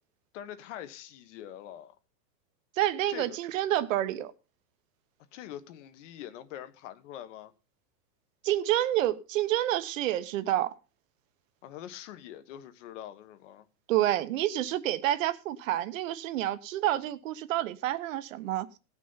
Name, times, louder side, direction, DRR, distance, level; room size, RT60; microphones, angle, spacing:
voice 1, 0.3-2.0 3.1-3.4 5.3-7.5 11.6-13.7, left 11 dB, 45° left, 1.5 m, -44 dB
voice 2, 2.7-4.3 8.4-10.7 13.9-18.7, right 13 dB, 50° right, 1.2 m, -28 dB
18.0 x 6.3 x 5.7 m
supercardioid pair, 170°, 49 cm